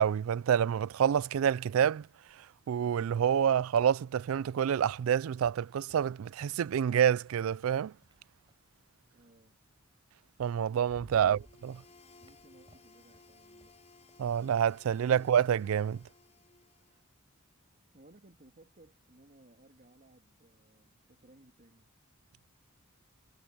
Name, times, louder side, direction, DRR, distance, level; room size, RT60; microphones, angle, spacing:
voice 1, 0.0-2.1 2.7-7.9 10.4-11.8 14.2-16.0, right 8 dB, 75° right, 0.3 m, -28 dB
sound 1, 6.4-8.7 10.0-10.1 10.5-16.2, equal, 25° right, 6.7 m, -61 dB
voice 2, 9.1-9.6 11.1-11.7 12.1-13.8 17.9-21.9, right 1 dB, 40° right, 2.5 m, -61 dB
sound 2, 11.3-17.1, left 3 dB, 35° left, 7.0 m, -60 dB
head